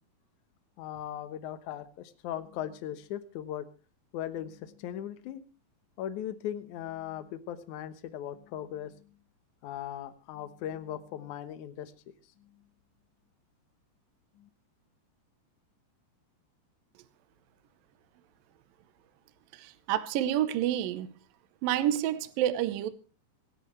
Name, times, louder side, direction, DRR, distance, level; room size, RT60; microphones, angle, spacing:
voice 1, 0.8-3.7 4.1-5.4 6.0-9.0 9.6-11.9 14.4-14.5, left 11 dB, 65° left, 2.0 m, -38 dB
voice 2, 19.5-21.1 21.6-22.9, right 11 dB, 70° right, 2.3 m, -29 dB
26.0 x 11.0 x 3.2 m
omnidirectional pair, 4.8 m